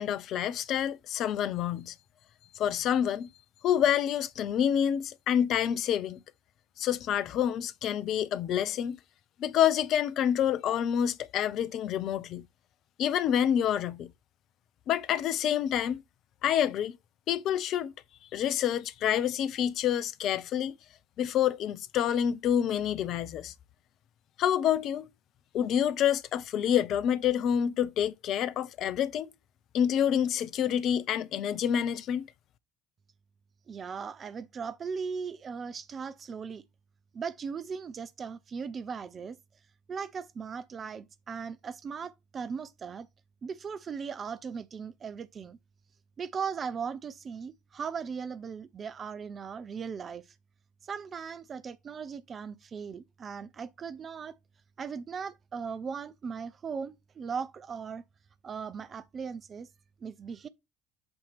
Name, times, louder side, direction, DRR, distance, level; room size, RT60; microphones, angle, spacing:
voice 1, 0.0-1.9 2.6-3.3 3.6-6.2 6.8-9.0 9.4-12.5 13.0-14.1 14.9-16.0 16.4-17.0 17.3-17.9 18.3-20.7 21.2-23.5 24.4-25.1 25.5-29.3 29.7-32.3, left 9 dB, 55° left, 0.5 m, -27 dB
voice 2, 33.7-36.6 37.1-39.4 39.9-43.1 43.4-45.6 46.2-50.3 50.8-54.4 54.8-58.0 58.4-59.7 60.0-60.5, right 6 dB, 40° right, 0.5 m, -38 dB
7.7 x 2.9 x 5.7 m
figure-of-eight pair, 60°, 0 cm